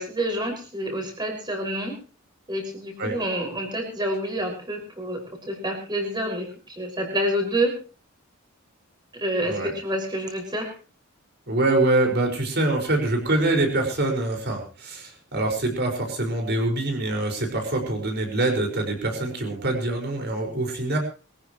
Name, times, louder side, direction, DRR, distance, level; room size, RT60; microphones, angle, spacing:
voice 1, 0.0-2.0 2.5-7.8 9.1-10.7, right 1 dB, 20° right, 1 dB, 6.1 m, -28 dB
voice 2, 11.5-21.0, right 2 dB, 55° right, 2 dB, 5.6 m, -24 dB
23.5 x 15.0 x 3.2 m, 0.35 s
head